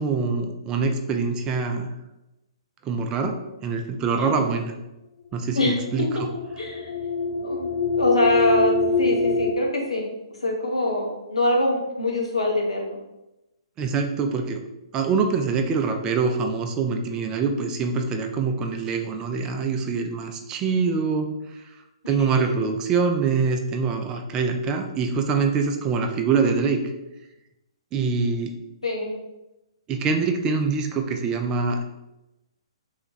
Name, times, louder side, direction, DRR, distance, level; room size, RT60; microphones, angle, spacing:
voice 1, 0.0-1.9 2.8-4.7 5.3-6.3 13.8-14.6 14.9-21.7 22.1-26.8 27.9-28.5 29.9-31.8, right 5 dB, 20° right, 4 dB, 0.4 m, -24 dB
voice 2, 4.1-4.4 5.5-6.1 6.6-6.9 7.4-10.1 10.4-13.0 22.0-22.1 28.8-29.2, left 2 dB, 85° left, 0 dB, 1.0 m, -24 dB
sound 1, 5.6-9.5, left 3 dB, 40° left, 0.4 m, -24 dB
3.4 x 3.0 x 4.0 m, 0.96 s
figure-of-eight pair, 125°, 3 cm